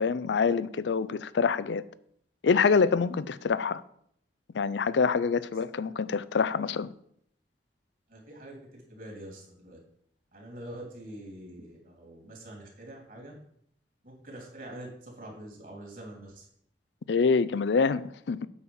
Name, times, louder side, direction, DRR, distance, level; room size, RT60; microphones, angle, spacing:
voice 1, 0.0-1.8 2.4-3.8 4.5-6.9 17.1-18.5, left 5 dB, 90° left, 0.4 m, -26 dB
voice 2, 8.1-9.8 10.3-13.3 14.0-16.4, right 1 dB, 50° right, 3.0 m, -45 dB
8.5 x 4.3 x 7.1 m
head